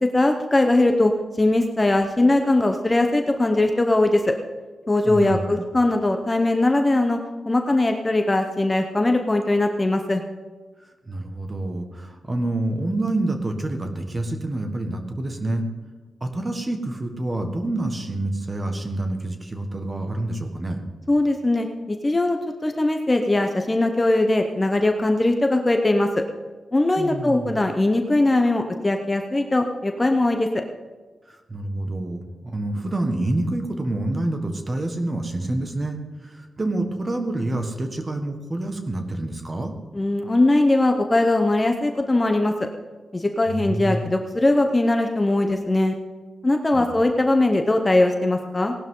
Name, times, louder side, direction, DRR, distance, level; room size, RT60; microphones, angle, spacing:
voice 1, 0.0-1.1 1.4-4.2 4.9-7.2 7.5-10.2 21.1-26.1 26.7-30.6 39.9-42.5 43.1-45.9 46.4-48.7, left 2 dB, 15° left, 4 dB, 0.8 m, -20 dB
voice 2, 5.1-5.7 11.1-15.6 16.2-20.8 27.0-27.5 31.3-39.7 43.5-44.1 46.7-47.0, right 2 dB, 20° right, 5 dB, 1.5 m, -27 dB
18.0 x 12.0 x 3.8 m, 1.3 s
wide cardioid pair, 155°, 0 cm